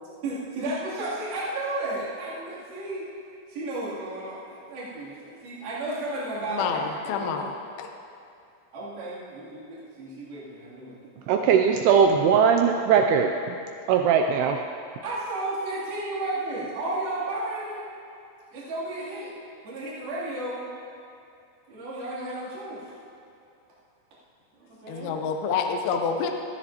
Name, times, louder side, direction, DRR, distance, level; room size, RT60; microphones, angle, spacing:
voice 1, 0.2-3.1 3.5-7.5 8.7-11.5 15.0-17.8 18.5-19.3 19.6-20.7 21.7-22.8 24.5-25.2, right 2 dB, 60° right, -10 dB, 4.8 m, -33 dB
voice 2, 6.5-7.5 7.8-7.9 24.9-26.3, left 6 dB, 75° left, 3 dB, 2.4 m, -27 dB
voice 3, 11.3-13.6 13.9-14.6, right 7 dB, 85° right, 4 dB, 2.3 m, -20 dB
19.0 x 14.0 x 3.0 m, 2.6 s
omnidirectional pair, 5.1 m